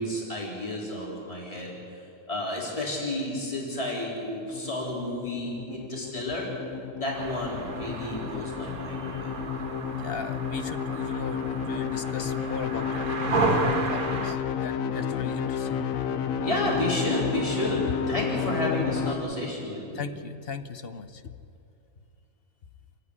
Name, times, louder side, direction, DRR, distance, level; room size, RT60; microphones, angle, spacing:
voice 1, 0.0-1.8 2.3-6.5 7.0-9.3 14.8-20.1, left 1 dB, 25° left, -4 dB, 4.1 m, -31 dB
sound 1, 4.5-19.2, left 7 dB, 70° left, 1.2 m, -31 dB
sound 2, 7.1-14.3, right 3 dB, 90° right, 2.0 m, -32 dB
voice 2, 10.0-15.8 19.9-21.3, left 6 dB, 50° left, 10 dB, 0.9 m, -38 dB
28.5 x 9.5 x 9.8 m, 2.6 s
omnidirectional pair, 1.5 m